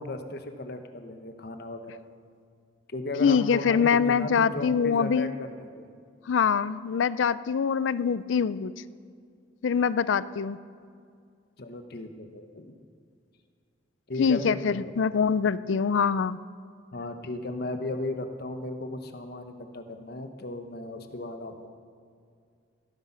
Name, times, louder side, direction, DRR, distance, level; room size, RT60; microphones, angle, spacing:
voice 1, 0.0-2.0 2.9-5.9 11.6-12.8 14.1-14.9 16.9-21.7, left 2 dB, 55° left, 7 dB, 1.0 m, -36 dB
voice 2, 3.2-5.3 6.3-8.7 9.6-10.6 14.2-16.4, left 6 dB, 85° left, 17 dB, 0.4 m, -24 dB
16.5 x 9.7 x 5.6 m, 2.2 s
head